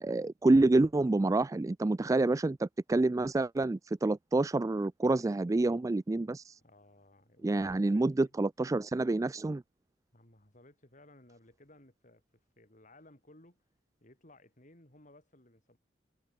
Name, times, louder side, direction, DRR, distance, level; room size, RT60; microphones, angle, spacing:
voice 1, 0.0-6.5 7.4-9.6, right 2 dB, 20° right, 0.3 m, -28 dB
voice 2, 6.6-8.4 10.1-13.6 14.0-15.8, left 1 dB, 45° left, 5.5 m, -59 dB
head